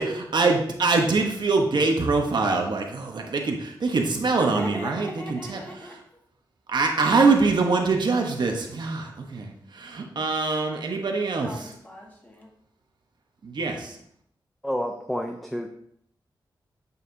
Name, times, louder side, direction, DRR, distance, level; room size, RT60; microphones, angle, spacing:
voice 1, 0.0-5.6 6.7-11.7 13.4-14.0, right 3 dB, 65° right, 2 dB, 1.1 m, -24 dB
voice 2, 4.4-6.0 11.4-12.5, equal, 20° left, -2 dB, 2.0 m, -38 dB
voice 3, 14.6-15.7, equal, ahead, 3 dB, 0.6 m, -29 dB
9.4 x 5.6 x 2.8 m, 0.69 s
wide cardioid pair, 105°, 8 cm